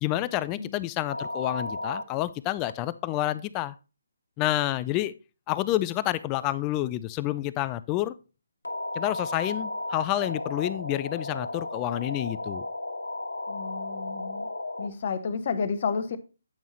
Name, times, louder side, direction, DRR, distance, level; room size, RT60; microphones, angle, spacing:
voice 1, 0.0-3.8 4.4-5.1 5.5-8.1 8.9-12.7, left 15 dB, 20° left, 0.3 m, -29 dB
sound 1, 1.1-2.0 2.6-2.7 8.6-14.9, left 2 dB, 85° left, 1.3 m, -34 dB
voice 2, 13.5-14.5 14.8-16.2, left 5 dB, 45° left, 0.8 m, -31 dB
8.6 x 5.3 x 3.1 m
figure-of-eight pair, 145°, 0 cm